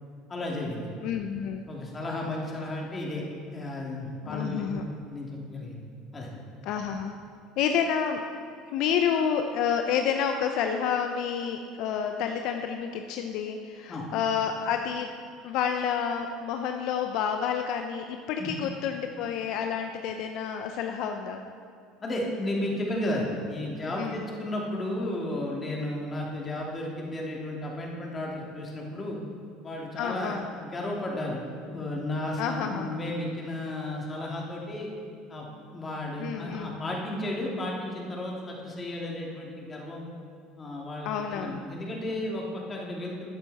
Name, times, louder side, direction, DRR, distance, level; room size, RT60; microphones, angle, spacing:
voice 1, 0.3-0.9 1.7-3.2 3.5-4.7 5.1-5.8 6.1-6.3 13.9-14.1 18.4-18.5 22.0-29.2 29.6-31.4 31.7-34.9 35.3-35.4 35.7-40.1 40.6-43.3, left 1 dB, 25° left, -2 dB, 2.6 m, -33 dB
voice 2, 1.0-1.6 4.3-4.9 6.6-7.1 7.6-8.2 8.7-15.1 15.4-21.4 24.0-24.2 30.0-30.4 32.4-32.9 36.2-36.8 41.1-41.6, left 7 dB, 65° left, 5 dB, 0.6 m, -29 dB
13.0 x 8.9 x 4.2 m, 2.5 s
supercardioid pair, 95°, 0 cm